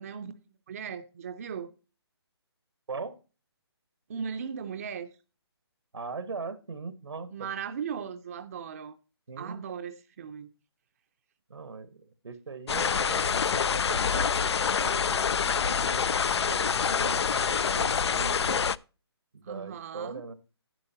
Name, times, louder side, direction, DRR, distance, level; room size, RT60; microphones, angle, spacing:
voice 1, 0.0-1.7 4.1-5.1 7.3-9.0 9.4-10.5 19.4-20.2, right 7 dB, 35° right, 0.5 m, -38 dB
voice 2, 5.9-7.5 9.3-9.6 11.5-18.6 19.3-20.3, right 4 dB, 85° right, 1.3 m, -40 dB
sound 1, 12.7-18.8, left 6 dB, 80° left, 0.4 m, -26 dB
11.0 x 9.7 x 2.8 m
hypercardioid pair, 160°, 14 cm